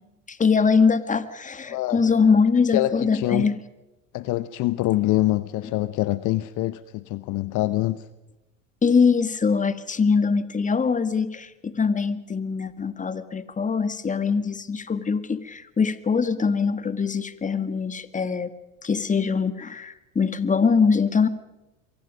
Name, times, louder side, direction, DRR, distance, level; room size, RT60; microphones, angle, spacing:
voice 1, 0.3-3.6 8.8-18.5 18.8-21.3, left 5 dB, 20° left, 1.8 m, -22 dB
voice 2, 1.7-2.0 2.7-3.5 4.1-8.1, left 16 dB, 50° left, 0.9 m, -25 dB
28.5 x 23.5 x 5.2 m
hypercardioid pair, 80°, 39 cm